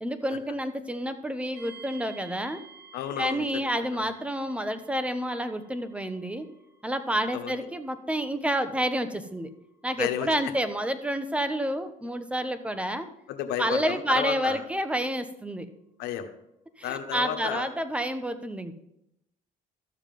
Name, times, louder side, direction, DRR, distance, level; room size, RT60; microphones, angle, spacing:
voice 1, 0.0-2.6 3.2-6.4 6.8-9.5 9.8-13.1 13.6-15.7 16.8-18.7, equal, 5° right, 10 dB, 1.0 m, -29 dB
sound 1, 1.5-16.4, right 5 dB, 35° right, 4.5 m, -55 dB
voice 2, 2.9-3.6 7.3-7.6 10.0-10.3 13.3-14.6 16.0-16.3 16.8-17.7, left 10 dB, 90° left, 6 dB, 1.3 m, -32 dB
13.0 x 7.3 x 5.3 m, 0.81 s
cardioid pair, 110°, 17 cm